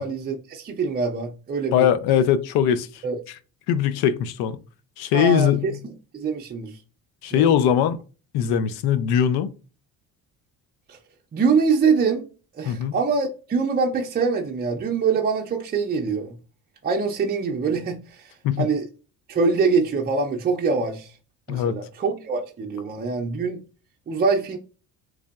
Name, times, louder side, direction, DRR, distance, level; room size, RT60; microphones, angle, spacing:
voice 1, 0.0-1.9 2.1-2.2 3.0-3.2 5.1-5.7 6.1-6.7 7.3-7.5 10.9-11.0 11.3-12.2 12.6-16.3 16.8-18.3 18.6-18.8 19.3-21.1 21.5-23.6 24.1-24.6, right 5 dB, 25° right, 0.5 m, -24 dB
voice 2, 1.7-2.9 3.7-4.6 5.0-5.8 7.2-8.0 8.3-9.5 12.7-13.0 18.4-18.7 21.5-21.7, left 9 dB, 80° left, 0.6 m, -21 dB
3.6 x 3.3 x 2.3 m
cardioid pair, 105°, 38 cm